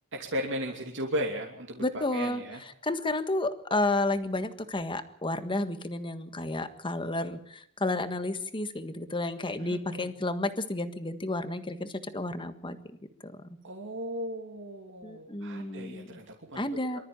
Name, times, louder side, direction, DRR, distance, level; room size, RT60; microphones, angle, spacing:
voice 1, 0.1-2.6 9.6-10.1 13.6-16.6 16.9-17.0, equal, 60° right, 0 dB, 2.8 m, -36 dB
voice 2, 1.8-2.4 2.8-12.8 13.2-13.3 15.0-16.2 16.5-17.0, left 2 dB, 25° left, 10 dB, 1.5 m, -31 dB
24.5 x 13.5 x 8.8 m, 0.71 s
head